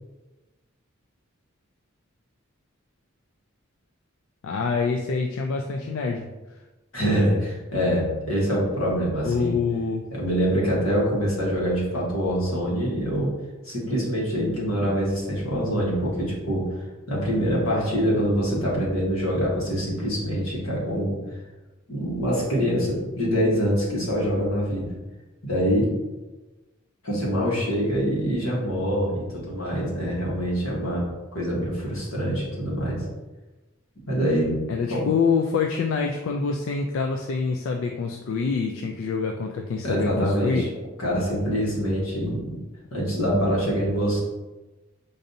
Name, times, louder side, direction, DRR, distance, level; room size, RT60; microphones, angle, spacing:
voice 1, 4.4-6.3 9.2-10.0 34.7-40.7, left 5 dB, 70° left, 3 dB, 0.3 m, -26 dB
voice 2, 6.9-9.6 10.1-13.3 13.6-16.8 17.1-21.2 21.9-24.9 25.4-25.9 27.0-33.1 34.0-34.6 34.9-35.1 39.8-40.7 41.0-42.6 42.9-44.2, equal, 90° left, -4 dB, 1.3 m, -25 dB
5.1 x 2.6 x 2.7 m, 1.1 s
head